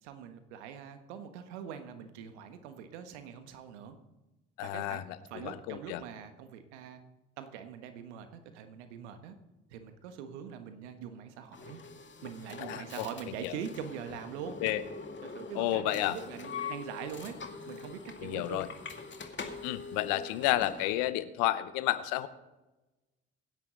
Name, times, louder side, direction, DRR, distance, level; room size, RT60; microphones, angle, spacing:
voice 1, 0.0-4.0 4.6-7.0 7.4-9.4 9.7-11.8 12.2-14.6 15.2-17.3 17.7-18.7, right 8 dB, 80° right, 8 dB, 1.4 m, -43 dB
voice 2, 4.6-5.0 5.4-6.0 12.6-13.1 13.4-13.5 14.6-14.8 15.5-16.2 18.2-18.7 19.6-22.3, left 15 dB, 70° left, 14 dB, 0.9 m, -31 dB
sound 1, 11.5-20.9, left 5 dB, 35° left, 2.2 m, -44 dB
24.5 x 10.0 x 3.9 m, 1.1 s
hypercardioid pair, 50°, 34 cm